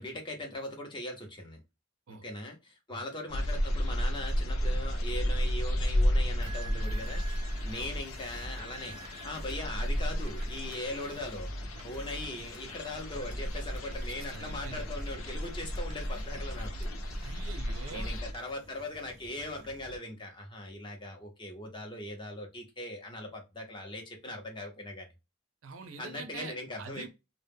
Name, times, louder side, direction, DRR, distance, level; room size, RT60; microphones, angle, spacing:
voice 1, 0.0-1.6 2.1-11.5 11.8-16.9 17.9-25.1 26.0-27.1, left 1 dB, 25° left, 0.6 m, -40 dB
sound 1, 3.3-18.3, equal, 80° left, 0.5 m, -33 dB
sound 2, 6.4-20.0, right 1 dB, 30° right, 0.6 m, -44 dB
voice 2, 14.3-14.8 17.2-18.1 25.6-27.1, right 5 dB, 75° right, 0.5 m, -45 dB
2.1 x 2.0 x 3.3 m
head